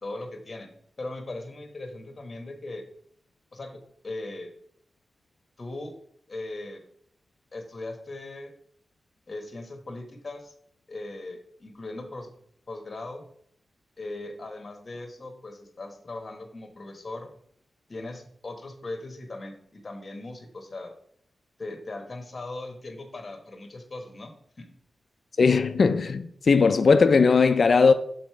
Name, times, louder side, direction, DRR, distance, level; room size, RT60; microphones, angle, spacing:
voice 1, 0.0-0.7 1.0-2.8 3.5-4.5 5.6-5.9 6.3-6.8 7.5-8.5 9.3-10.5 10.9-12.3 12.7-13.2 14.0-17.3 17.9-20.9 21.6-24.3 24.6-24.7, left 2 dB, 35° left, 1.3 m, -39 dB
voice 2, 25.4-27.9, left 4 dB, 55° left, 0.4 m, -19 dB
6.4 x 4.1 x 4.7 m
wide cardioid pair, 95°, 0 cm